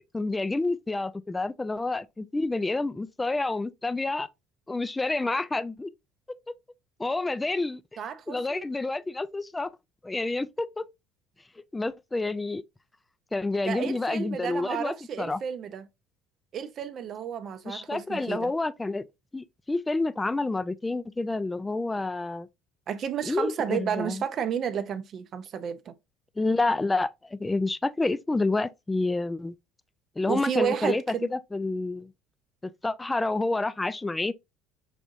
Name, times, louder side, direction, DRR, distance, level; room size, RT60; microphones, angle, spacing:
voice 1, 0.1-4.3 4.7-5.9 7.0-7.8 8.3-9.7 10.0-10.9 11.7-12.6 13.3-15.4 17.6-19.0 19.3-22.5 23.3-24.2 26.4-29.5 30.2-31.0 31.3-32.1 32.6-34.3, left 2 dB, 15° left, 0.4 m, -29 dB
voice 2, 8.0-8.7 13.5-15.9 16.5-18.5 22.9-25.9 30.3-31.3, right 8 dB, 50° right, 0.5 m, -32 dB
4.8 x 2.6 x 2.5 m
hypercardioid pair, 70°, 0 cm